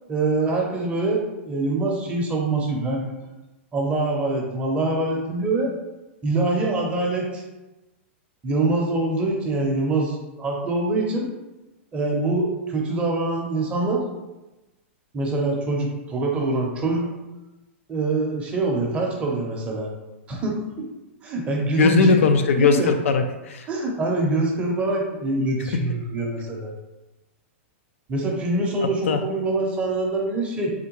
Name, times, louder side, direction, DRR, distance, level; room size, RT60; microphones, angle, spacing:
voice 1, 0.1-3.1 3.7-5.7 6.2-7.4 8.4-11.3 11.9-14.0 15.1-17.1 17.9-19.9 20.3-20.5 21.2-22.2 22.6-22.9 23.7-26.7 28.1-30.7, right 2 dB, 15° right, -1 dB, 0.6 m, -24 dB
voice 2, 21.7-23.6 29.1-29.2, left 5 dB, 85° left, 6 dB, 0.4 m, -19 dB
3.6 x 2.2 x 2.9 m, 1.0 s
hypercardioid pair, 150°, 7 cm